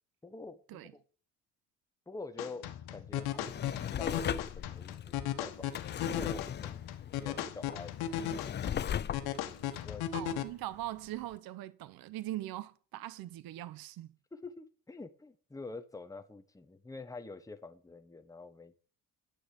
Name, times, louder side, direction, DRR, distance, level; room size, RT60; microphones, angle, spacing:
voice 1, 0.2-0.9 2.1-3.7 4.0-5.8 6.1-6.8 7.2-8.3 9.0-10.2 14.3-18.8, left 3 dB, 10° left, 1.2 m, -47 dB
sound 1, 2.4-10.4, left 10 dB, 75° left, 1.4 m, -37 dB
Drawer open or close, 3.2-10.9 11.3-11.4, left 9 dB, 30° left, 0.4 m, -39 dB
voice 2, 10.1-14.1, right 15 dB, 70° right, 1.0 m, -41 dB
9.7 x 6.4 x 8.4 m
cardioid pair, 90°, 37 cm